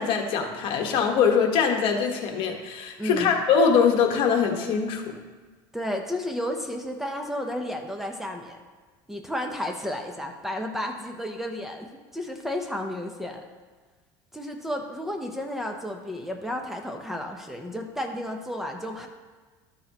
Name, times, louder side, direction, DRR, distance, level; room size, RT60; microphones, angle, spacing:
voice 1, 0.0-5.0, left 6 dB, 55° left, 3 dB, 1.3 m, -22 dB
voice 2, 3.0-3.3 5.7-8.6 9.1-13.4 14.3-19.1, left 1 dB, 5° right, 3 dB, 0.7 m, -32 dB
13.0 x 6.2 x 3.0 m, 1.4 s
cardioid pair, 130°, 11 cm